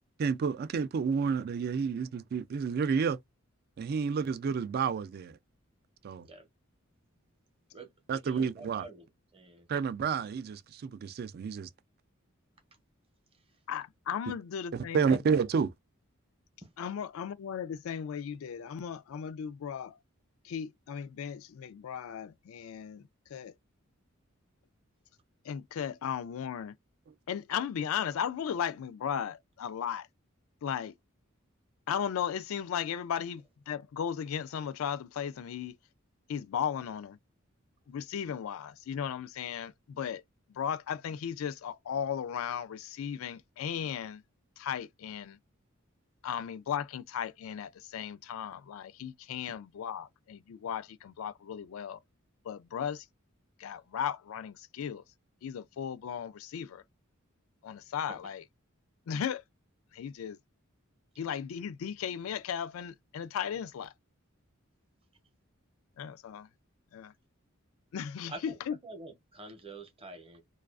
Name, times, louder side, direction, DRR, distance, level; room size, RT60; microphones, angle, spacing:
voice 1, 0.2-3.2 3.8-5.4 6.0-6.2 8.1-8.9 9.7-11.7 14.7-15.7, right 6 dB, 50° right, 0.3 m, -30 dB
voice 2, 7.7-9.0 9.3-9.7 58.1-58.2 68.3-68.6 68.8-70.4, right 2 dB, 25° right, 0.7 m, -47 dB
voice 3, 13.7-15.2 16.8-20.0 20.4-23.0 23.3-23.5 25.4-26.7 27.3-30.1 30.6-30.9 31.9-35.8 36.3-37.2 37.9-40.2 40.5-44.2 44.6-45.4 46.2-52.0 52.4-53.1 53.6-55.0 55.4-56.8 57.6-58.4 59.1-59.4 59.9-60.4 61.2-63.9 66.0-66.5 66.9-67.1 67.9-68.8, left 8 dB, 80° left, 0.3 m, -36 dB
2.3 x 2.3 x 2.3 m
head